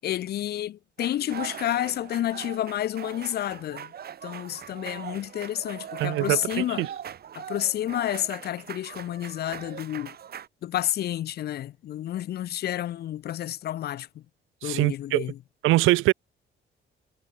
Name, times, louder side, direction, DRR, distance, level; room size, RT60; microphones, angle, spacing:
voice 1, 0.0-3.9 4.2-6.9 7.4-10.2 10.6-14.2 14.6-15.4, left 12 dB, 55° left, 0.4 m, -30 dB
sound 1, 1.0-10.5, right 9 dB, 50° right, 1.1 m, -41 dB
voice 2, 6.0-6.4 6.8-6.9 14.6-15.3 15.6-16.1, right 19 dB, 90° right, 0.5 m, -22 dB
cardioid pair, 90°, 20 cm